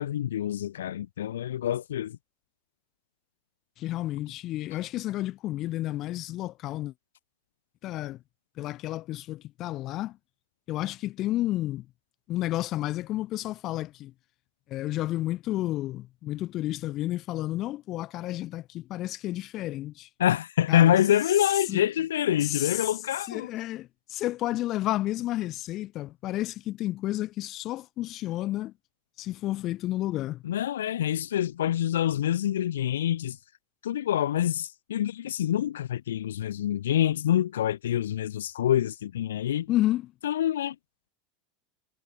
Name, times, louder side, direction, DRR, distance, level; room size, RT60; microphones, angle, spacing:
voice 1, 0.0-2.2 20.2-23.5 30.4-33.4 33.8-39.7 40.2-40.7, left 11 dB, 90° left, 1.7 m, -26 dB
voice 2, 3.8-6.9 7.8-8.2 8.6-10.2 10.7-11.8 12.3-14.1 14.7-20.1 20.7-20.9 21.7-21.8 22.4-22.9 23.3-28.7 29.2-30.4 39.7-40.1, left 15 dB, 50° left, 1.7 m, -31 dB
hypercardioid pair, 105°, 0 cm